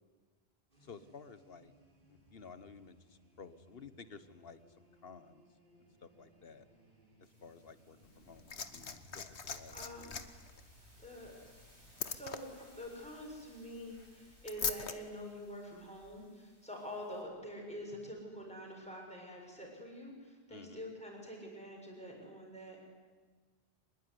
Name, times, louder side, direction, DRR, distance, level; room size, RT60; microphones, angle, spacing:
sound 1, 0.7-12.0, equal, 50° right, 6.2 m, -63 dB
voice 1, 0.8-1.7 2.1-5.4 6.0-6.6 7.2-9.9 20.5-20.8, left 5 dB, 60° left, 13 dB, 1.5 m, -54 dB
sound 2, 7.2-17.2, right 1 dB, 80° right, 6.8 m, -66 dB
Liquid, 8.0-15.0 16.0-16.1, left 6 dB, 75° left, 1.6 m, -43 dB
voice 2, 9.7-10.1 11.0-11.4 12.1-22.8, equal, 5° left, -1 dB, 7.2 m, -46 dB
24.5 x 21.0 x 9.8 m, 1.4 s
omnidirectional pair, 1.1 m